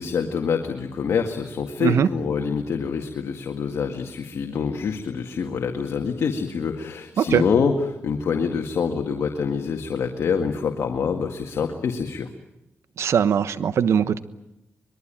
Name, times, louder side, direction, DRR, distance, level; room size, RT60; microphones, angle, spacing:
voice 1, 0.0-12.3, left 6 dB, 80° left, 4 dB, 2.0 m, -26 dB
voice 2, 13.0-14.2, right 8 dB, 80° right, 13 dB, 1.2 m, -20 dB
25.0 x 22.0 x 9.0 m, 0.92 s
cardioid pair, 70°, 5 cm